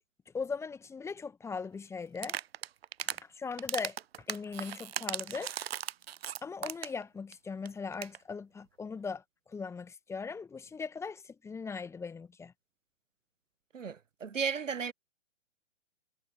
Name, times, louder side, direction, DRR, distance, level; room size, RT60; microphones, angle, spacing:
voice 1, 0.3-2.4 3.0-4.0 4.3-5.5 6.4-9.2 9.5-12.5, left 5 dB, 5° left, 1.4 m, -39 dB
sound 1, 2.2-3.2 3.6-7.0 7.3-7.4 7.7-7.8 7.9-8.2, right 10 dB, 50° right, 0.6 m, -37 dB
voice 2, 13.7-14.9, right 6 dB, 75° right, 1.0 m, -34 dB
figure-of-eight pair, 120°, 38 cm